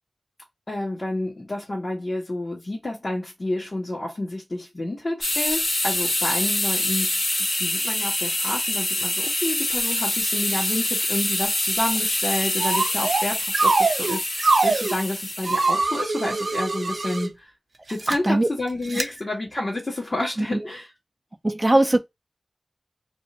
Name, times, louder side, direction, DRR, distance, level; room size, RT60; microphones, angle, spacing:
voice 1, 0.7-7.1 7.6-17.5 17.9-20.9, left 1 dB, 45° left, 1.2 m, -29 dB
sound 1, 5.2-15.7, left 1 dB, 85° left, 1.3 m, -25 dB
sound 2, 12.6-13.2 13.5-15.0 15.4-17.3 17.9-18.1 18.9-19.0, right 3 dB, 75° right, 0.5 m, -23 dB
voice 2, 18.1-18.5 20.4-20.6 21.4-22.0, right 1 dB, 20° right, 0.5 m, -20 dB
2.6 x 2.5 x 4.1 m
wide cardioid pair, 90°, 0 cm